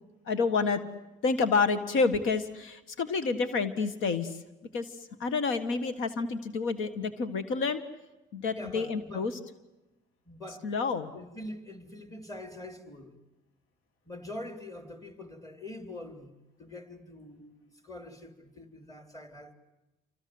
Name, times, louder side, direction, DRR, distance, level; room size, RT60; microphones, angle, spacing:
voice 1, 0.3-0.8 1.2-4.4 4.7-7.8 8.3-9.3 10.6-11.1, left 4 dB, 90° left, 1.7 m, -29 dB
voice 2, 8.5-9.3 10.3-10.7 11.1-13.1 14.1-19.5, left 1 dB, 15° left, 3.8 m, -44 dB
28.0 x 25.5 x 7.9 m
cardioid pair, 90°, 20 cm